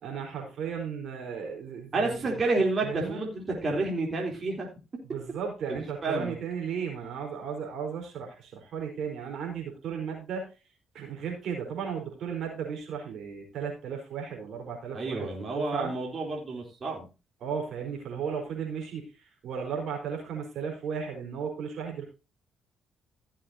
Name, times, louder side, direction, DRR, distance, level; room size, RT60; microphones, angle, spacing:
voice 1, 0.0-2.3 2.8-3.2 5.1-10.5 10.9-15.3 15.5-15.9 17.4-19.0 19.4-22.1, right 7 dB, 70° right, 2 dB, 4.6 m, -35 dB
voice 2, 1.9-4.7 5.7-6.4 14.9-17.1, right 3 dB, 45° right, -1 dB, 3.8 m, -30 dB
16.0 x 7.6 x 2.8 m, 0.29 s
cardioid pair, 75°, 0 cm